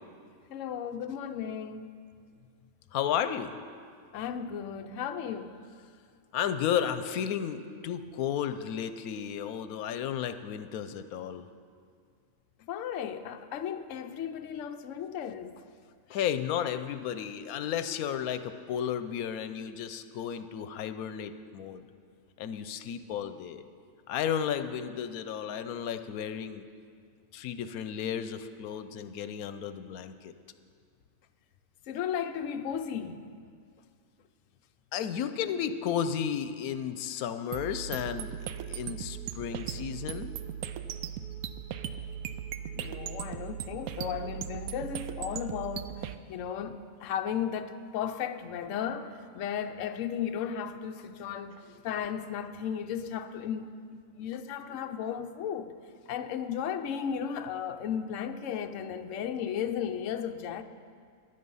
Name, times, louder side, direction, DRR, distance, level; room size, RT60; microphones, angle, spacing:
voice 1, 0.5-1.8 4.1-5.5 12.7-15.6 31.9-33.2 42.7-53.7 54.1-55.7 56.1-60.6, left 8 dB, 65° left, 0.9 m, -35 dB
voice 2, 2.9-3.5 6.3-11.5 16.1-21.8 22.4-23.6 24.1-26.6 27.3-30.3 34.9-40.3, left 9 dB, 85° left, 1.1 m, -33 dB
sound 1, 37.5-46.2, right 9 dB, 85° right, 1.1 m, -38 dB
15.5 x 10.5 x 5.5 m
omnidirectional pair, 1.5 m